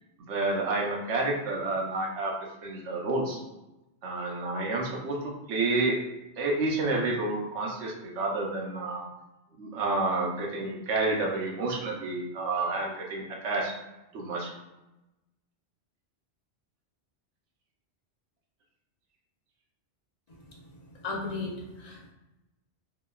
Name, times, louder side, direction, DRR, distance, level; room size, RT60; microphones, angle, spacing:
voice 1, 0.2-2.3 2.6-3.4 4.0-6.0 6.4-9.1 9.6-13.7 14.1-14.5, right 2 dB, 80° right, -1 dB, 1.0 m, -29 dB
voice 2, 21.0-22.1, left 3 dB, 50° left, -2 dB, 0.5 m, -35 dB
2.9 x 2.1 x 2.2 m, 0.94 s
omnidirectional pair, 1.2 m